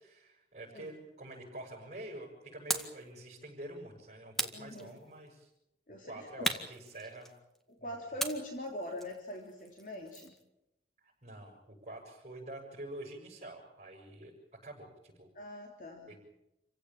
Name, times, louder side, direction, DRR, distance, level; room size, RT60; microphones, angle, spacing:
voice 1, 0.0-5.5 6.0-7.3 7.8-8.2 11.0-11.6 11.8-14.3 14.6-15.3 16.1-16.2, right 1 dB, 40° right, -5 dB, 6.9 m, -47 dB
sound 1, 2.7-3.0 4.3-5.3 6.4-7.6 8.2-10.4, right 1 dB, ahead, 1.9 m, -38 dB
voice 2, 4.5-5.0 5.9-6.5 7.8-10.3 15.4-16.1, left 1 dB, 45° left, 1 dB, 3.4 m, -42 dB
28.5 x 16.5 x 8.9 m, 0.90 s
head